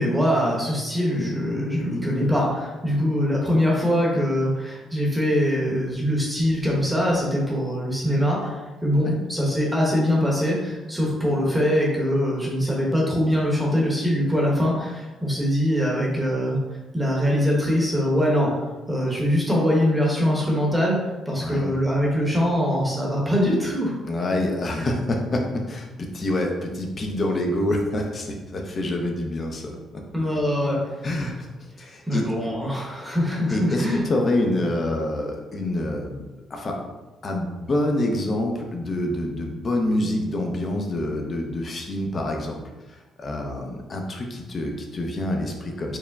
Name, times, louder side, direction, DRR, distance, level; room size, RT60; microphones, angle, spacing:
voice 1, 0.0-16.6 16.9-21.0 21.3-23.9 24.7-24.8 30.1-30.8 32.1-34.0, equal, 10° right, -4 dB, 1.0 m, -23 dB
voice 2, 24.0-30.0 31.0-31.3 31.8-32.3 33.5-36.2 36.5-36.9 37.2-42.6 42.9-46.0, left 1 dB, 35° left, 2 dB, 0.6 m, -26 dB
4.6 x 2.1 x 3.5 m, 1.1 s
cardioid pair, 120°, 0 cm